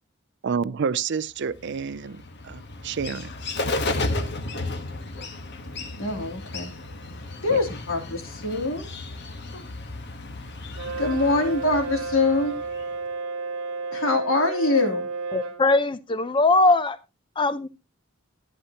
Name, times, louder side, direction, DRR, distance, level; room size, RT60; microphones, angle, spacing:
voice 1, 0.4-3.3 7.5-7.6, right 6 dB, 60° right, 0.5 m, -29 dB
Bird, 1.5-13.0, left 2 dB, 55° left, 1.4 m, -34 dB
voice 2, 6.0-6.7 7.4-8.9 11.0-12.5 13.9-15.1, left 3 dB, 90° left, 3.2 m, -24 dB
Brass instrument, 10.7-15.6, right 4 dB, 80° right, 1.3 m, -32 dB
voice 3, 15.3-17.0 17.4-17.7, left 2 dB, 25° left, 0.6 m, -20 dB
13.5 x 10.0 x 2.9 m
head